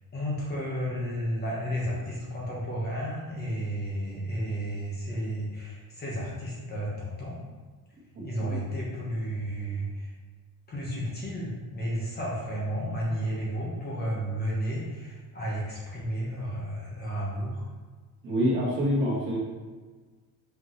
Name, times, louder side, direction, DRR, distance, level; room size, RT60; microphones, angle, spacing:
voice 1, 0.1-7.4 8.2-10.1 10.7-17.7, equal, 25° left, -5 dB, 1.3 m, -32 dB
voice 2, 18.2-19.4, equal, 30° right, -5 dB, 1.4 m, -26 dB
5.8 x 5.3 x 3.2 m, 1.4 s
cardioid pair, 180°, 40 cm